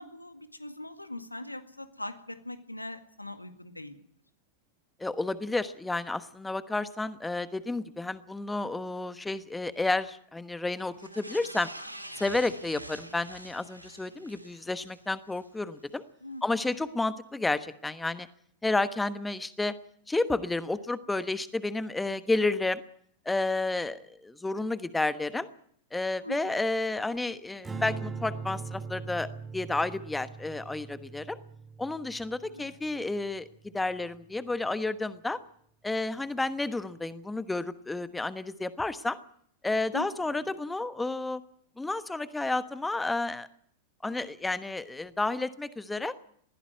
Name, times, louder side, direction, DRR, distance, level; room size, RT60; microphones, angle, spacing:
voice 1, 0.0-4.0 16.2-16.4 26.2-26.4 32.4-32.8 39.9-40.1, left 1 dB, 85° left, 9 dB, 1.9 m, -41 dB
voice 2, 5.0-11.7 12.2-16.0 16.4-18.3 18.6-19.7 20.1-22.8 23.2-25.5 25.9-29.3 29.5-31.4 31.8-33.5 33.7-35.4 35.8-39.2 39.6-41.4 41.8-43.5 44.0-46.1, left 2 dB, 10° left, 13 dB, 1.1 m, -31 dB
sound 1, 10.9-15.5 15.9-16.0, right 1 dB, 85° right, 2.6 m, -46 dB
Strum, 27.6-34.0, right 5 dB, 15° right, 2.2 m, -41 dB
21.0 x 15.5 x 9.4 m, 0.66 s
figure-of-eight pair, 90°, 0 cm